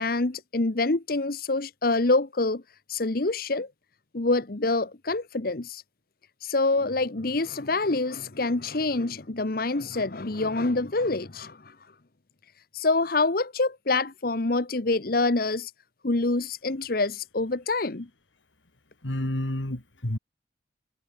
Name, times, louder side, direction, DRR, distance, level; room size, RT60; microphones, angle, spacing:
voice 1, 0.0-2.6 2.9-3.7 4.1-5.8 6.4-11.7 12.7-15.7 16.0-18.1, left 3 dB, 50° left, 1.1 m, -26 dB
voice 2, 19.0-20.2, left 1 dB, 90° left, 2.9 m, -30 dB
head